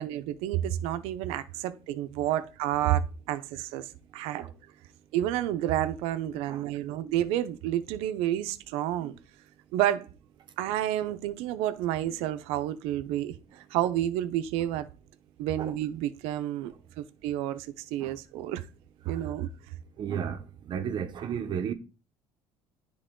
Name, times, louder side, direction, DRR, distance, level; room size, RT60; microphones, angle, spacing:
voice 1, 0.0-4.4 5.1-9.1 9.7-10.1 10.6-13.4 13.7-14.9 15.4-18.6 19.1-19.5, right 12 dB, 85° right, 0.6 m, -30 dB
voice 2, 20.0-21.7, right 8 dB, 50° right, 0.8 m, -34 dB
10.0 x 3.6 x 3.8 m
cardioid pair, 105°, 10 cm